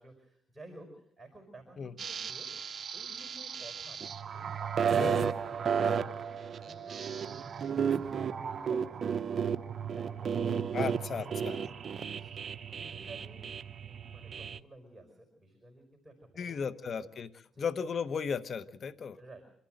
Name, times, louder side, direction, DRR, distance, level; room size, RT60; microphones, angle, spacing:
voice 1, 0.0-2.5 2.9-6.2 6.6-9.4 9.7-11.7 12.1-12.3 12.7-13.5 13.8-17.0 17.5-17.7 19.2-19.6, right 2 dB, 15° right, 2 dB, 5.3 m, -53 dB
sound 1, 2.0-14.6, right 7 dB, 50° right, 0.8 m, -33 dB
voice 2, 10.7-11.6 16.4-17.3 17.6-19.2, left 6 dB, 50° left, 14 dB, 1.0 m, -35 dB
26.5 x 13.0 x 7.8 m, 0.69 s
cardioid pair, 90°, 0 cm